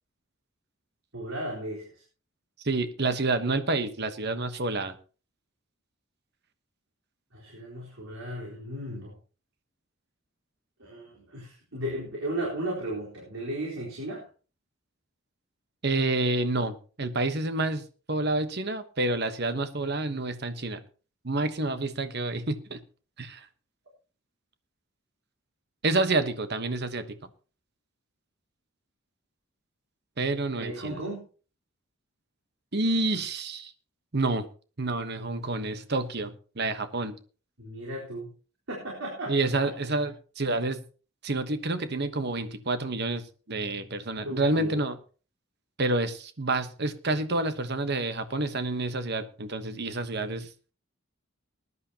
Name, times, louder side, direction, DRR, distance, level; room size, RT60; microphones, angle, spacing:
voice 1, 1.1-2.0 7.3-9.1 10.8-14.3 30.5-31.2 37.6-38.3 38.7-39.4 39.6-39.7 44.2-44.8, right 1 dB, 75° right, -5 dB, 4.2 m, -35 dB
voice 2, 2.6-5.0 15.8-17.8 18.1-20.8 21.2-22.8 23.2-23.5 25.8-27.3 30.2-31.0 32.7-33.7 34.1-34.5 34.8-37.1 39.3-40.8 41.2-45.0 45.8-50.5, right 2 dB, 50° right, 10 dB, 1.2 m, -28 dB
20.0 x 11.0 x 2.9 m, 0.36 s
head